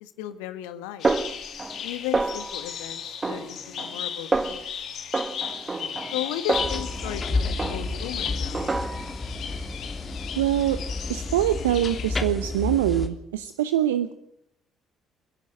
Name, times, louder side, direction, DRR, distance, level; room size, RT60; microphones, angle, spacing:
voice 1, 0.0-1.1 1.8-4.8 6.1-8.8, left 11 dB, 70° left, 11 dB, 1.5 m, -35 dB
sound 1, 1.0-12.1, left 8 dB, 55° left, 2.8 m, -36 dB
Snare drum, 1.0-1.9 2.1-2.7 3.2-4.0 4.3-4.7 5.1-7.2 7.6-8.1 8.5-9.2, right 3 dB, 25° right, 1.5 m, -28 dB
sound 2, 6.5-13.1, left 3 dB, 25° left, 3.2 m, -31 dB
voice 2, 10.4-10.8 11.1-14.1, right 12 dB, 80° right, 13 dB, 0.8 m, -24 dB
29.5 x 11.0 x 9.3 m, 0.74 s
figure-of-eight pair, 50°, 0 cm